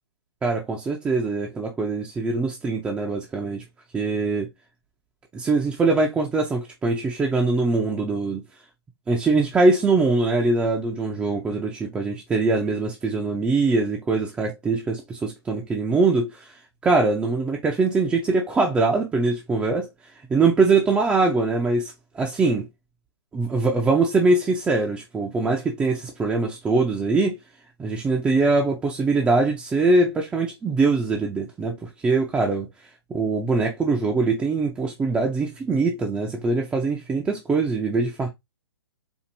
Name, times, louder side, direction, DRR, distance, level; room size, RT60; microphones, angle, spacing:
voice 1, 0.4-3.6 3.9-4.5 5.3-8.4 9.1-16.5 16.8-19.9 20.3-22.7 23.3-27.4 27.8-32.7 33.1-38.3, right 3 dB, 10° right, 0.4 m, -22 dB
4.4 x 2.5 x 2.6 m
figure-of-eight pair, 125°, 14 cm